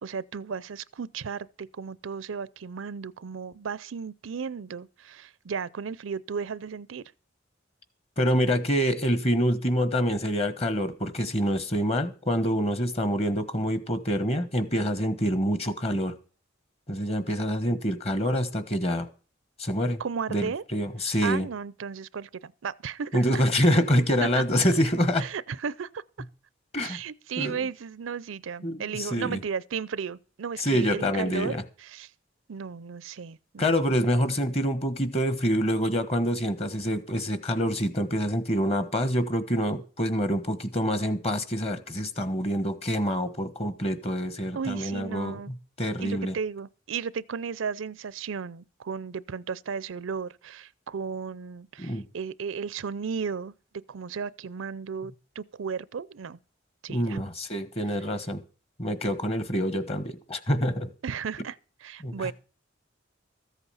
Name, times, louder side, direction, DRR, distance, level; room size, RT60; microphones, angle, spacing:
voice 1, 0.0-7.0 20.0-20.6 21.2-23.4 24.2-24.4 25.2-26.0 26.8-32.1 32.5-33.8 44.5-45.5 46.0-53.5 53.9-56.4 56.8-57.2 61.0-61.6 61.8-62.3, right 6 dB, 85° right, 0.5 m, -34 dB
voice 2, 8.2-16.1 16.9-19.1 19.6-20.0 20.3-21.5 23.1-25.3 26.7-27.0 27.4-27.6 28.6-29.4 30.6-31.6 33.6-46.3 51.8-52.0 56.9-58.4 58.8-60.9 62.0-62.3, equal, 30° left, 1.2 m, -26 dB
14.0 x 8.1 x 5.6 m
head